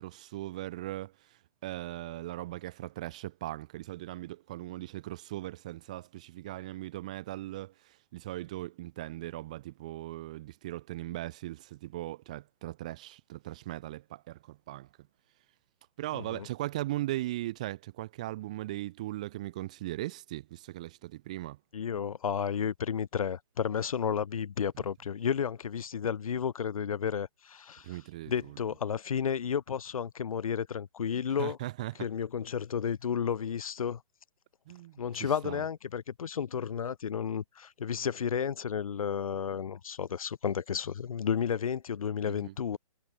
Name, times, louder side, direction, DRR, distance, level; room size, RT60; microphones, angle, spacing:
voice 1, 0.0-14.9 16.0-21.6 24.8-24.9 27.8-28.6 31.4-32.1 34.7-35.6 42.3-42.5, right 16 dB, 10° right, 0.5 m, -39 dB
voice 2, 16.1-16.5 21.7-27.9 28.3-31.6 32.0-34.0 35.0-42.8, left 7 dB, 65° left, 0.9 m, -32 dB
hypercardioid pair, 175°, 19 cm